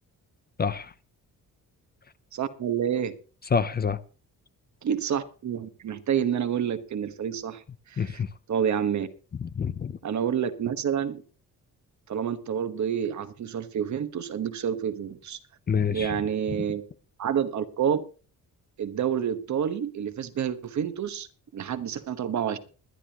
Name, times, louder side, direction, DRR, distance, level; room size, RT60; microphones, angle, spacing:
voice 1, 0.6-0.9 3.5-4.0 8.0-8.3 9.4-10.0 15.7-16.2 16.5-16.6, left 6 dB, 30° left, 0.5 m, -27 dB
voice 2, 2.3-3.2 4.8-8.2 8.5-9.1 10.0-11.2 12.1-15.4 15.9-16.8 17.2-18.0 18.8-21.3 21.5-22.6, right 8 dB, 55° right, 1.2 m, -28 dB
21.0 x 11.0 x 2.9 m
cardioid pair, 150°, 34 cm